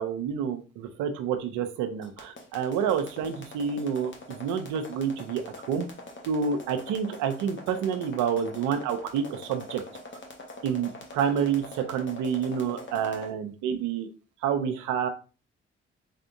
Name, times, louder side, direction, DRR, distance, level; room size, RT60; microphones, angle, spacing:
voice 1, 0.0-5.4 5.7-5.9 6.3-9.8 10.6-14.1 14.4-15.1, right 7 dB, 75° right, 8 dB, 0.6 m, -28 dB
sound 1, 2.0-13.3, left 2 dB, 40° left, 1.2 m, -43 dB
3.6 x 3.4 x 2.6 m, 0.35 s
hypercardioid pair, 45°, 31 cm